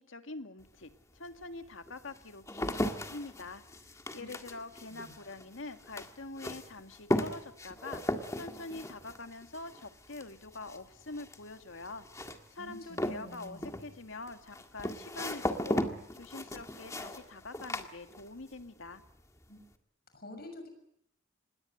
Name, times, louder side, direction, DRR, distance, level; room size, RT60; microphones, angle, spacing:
voice 1, 0.0-8.0 8.3-15.8 16.1-19.0, left 3 dB, 80° left, 7 dB, 1.9 m, -45 dB
sound 1, 0.6-0.7 1.4-18.6 18.9-19.5, left 1 dB, 15° left, 1.8 m, -37 dB
voice 2, 12.6-13.7 19.5-19.6 20.1-20.7, left 1 dB, 50° left, 7 dB, 6.6 m, -48 dB
26.5 x 20.5 x 7.9 m, 0.73 s
head